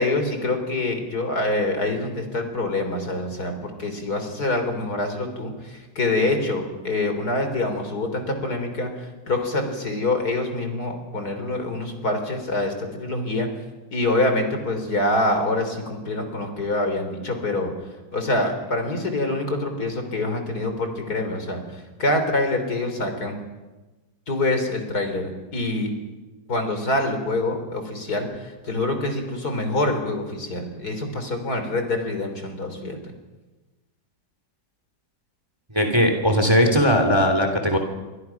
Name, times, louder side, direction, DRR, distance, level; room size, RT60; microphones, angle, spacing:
voice 1, 0.0-13.5 13.9-17.7 18.1-21.6 22.0-23.3 24.3-25.9 26.5-33.0, left 2 dB, 55° left, 6 dB, 4.2 m, -25 dB
voice 2, 35.7-37.8, equal, 15° right, 5 dB, 3.1 m, -19 dB
28.5 x 24.0 x 6.0 m, 1.2 s
omnidirectional pair, 2.0 m